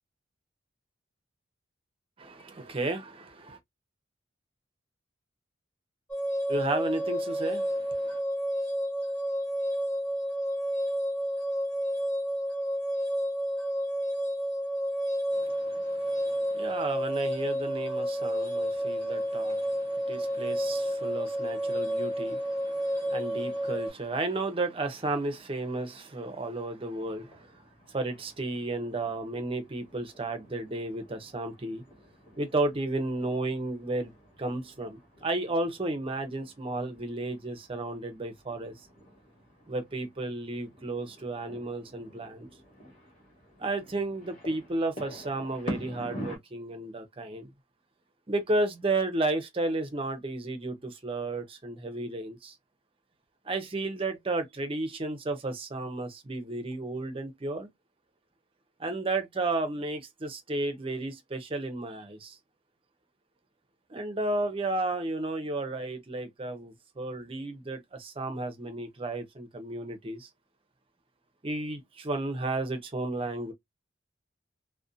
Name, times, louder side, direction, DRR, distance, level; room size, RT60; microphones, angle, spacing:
voice 1, 2.2-3.6 6.5-8.2 15.3-27.5 27.9-31.8 32.4-34.1 34.4-38.7 39.7-42.5 43.6-47.5 48.3-52.6 53.5-57.7 58.8-62.4 63.9-70.3 71.4-73.5, right 2 dB, 30° right, 0.6 m, -33 dB
sound 1, 6.1-23.9, equal, 5° left, 1.0 m, -30 dB
sound 2, 26.9-46.4, equal, 40° left, 1.2 m, -47 dB
2.6 x 2.1 x 2.5 m
head